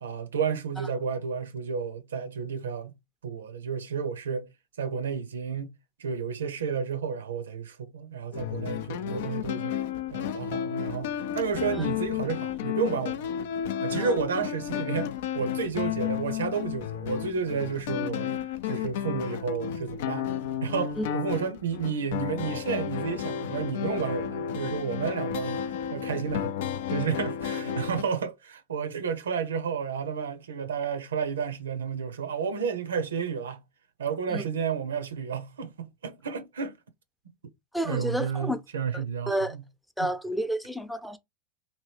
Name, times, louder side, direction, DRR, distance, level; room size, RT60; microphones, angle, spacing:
voice 1, 0.0-3.0 3.2-4.5 4.8-5.7 6.0-9.8 10.1-13.3 13.8-18.3 18.6-20.3 20.6-26.6 26.9-33.6 34.0-36.8 37.8-39.6 40.0-40.1, right 6 dB, 85° right, 0.5 m, -31 dB
sound 1, 8.3-28.0, left 9 dB, 70° left, 0.4 m, -32 dB
voice 2, 37.7-38.6 38.9-39.6 40.0-41.2, equal, ahead, 0.5 m, -30 dB
2.8 x 2.7 x 3.2 m
hypercardioid pair, 90°, 0 cm